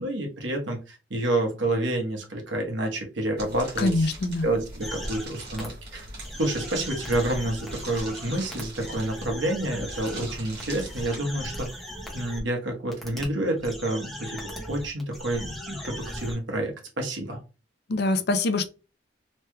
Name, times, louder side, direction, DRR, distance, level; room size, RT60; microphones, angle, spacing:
voice 1, 0.0-4.1 4.4-6.1 6.4-11.8 12.1-14.4 14.7-17.4, right 1 dB, 75° right, 1.0 m, -29 dB
sound 1, 3.4-11.2, right 1 dB, 55° right, 1.5 m, -41 dB
voice 2, 3.8-4.5 17.9-18.7, left 2 dB, 55° left, 0.4 m, -24 dB
sound 2, 4.8-5.3 5.6-5.7 6.1-12.4 12.9-13.2 13.5-16.4, equal, ahead, 0.8 m, -38 dB
3.1 x 3.1 x 2.2 m
head